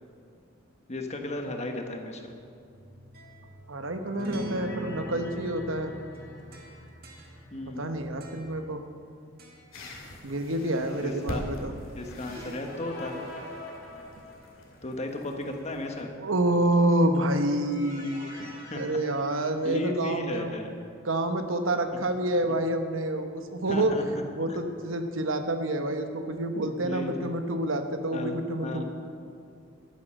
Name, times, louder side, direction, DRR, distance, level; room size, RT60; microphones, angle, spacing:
voice 1, 0.9-2.3 7.5-7.9 11.0-11.4 11.9-13.2 14.8-16.1 18.7-18.8 19.6-20.7 23.4-24.2 24.5-24.6 26.6-27.3 28.1-28.4 28.6-28.8, left 1 dB, 35° left, 3 dB, 1.3 m, -35 dB
sound 1, 2.7-9.1 9.4-9.8 12.2-13.1, equal, 50° right, 1.9 m, -42 dB
sound 2, 3.6-7.9 8.2-8.3 11.8-14.9 17.0-20.4, left 1 dB, 65° left, 2.6 m, -47 dB
voice 2, 3.7-5.9 7.8-8.8 10.2-11.7 16.2-20.5 21.0-23.9 24.3-28.8, right 1 dB, 80° right, 6 dB, 1.0 m, -28 dB
sound 3, 9.7-16.0, left 1 dB, 90° left, 2.6 m, -43 dB
12.0 x 9.6 x 6.3 m, 2.4 s
head